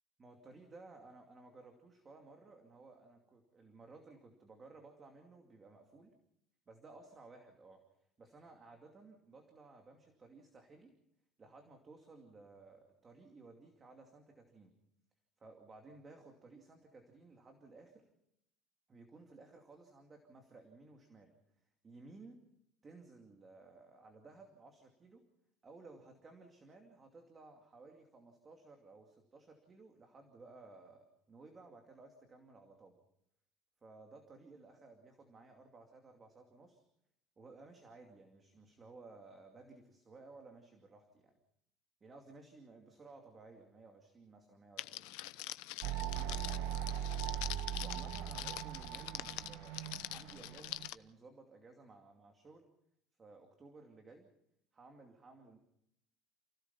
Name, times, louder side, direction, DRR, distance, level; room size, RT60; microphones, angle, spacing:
voice 1, 0.2-6.1 6.7-7.8 8.2-10.9 11.4-14.7 15.4-18.1 18.9-22.4 22.8-25.2 25.6-33.0 33.8-36.8 37.4-41.4 42.0-45.3 47.8-52.7 53.2-54.3 54.7-55.6, right 3 dB, 20° right, 3 dB, 2.5 m, -57 dB
Crackle, 44.8-50.9, left 18 dB, 85° left, 0.8 m, -45 dB
sound 1, 45.8-50.9, right 10 dB, 70° right, 0.8 m, -40 dB
29.0 x 17.0 x 5.6 m, 0.75 s
cardioid pair, 165°, 0 cm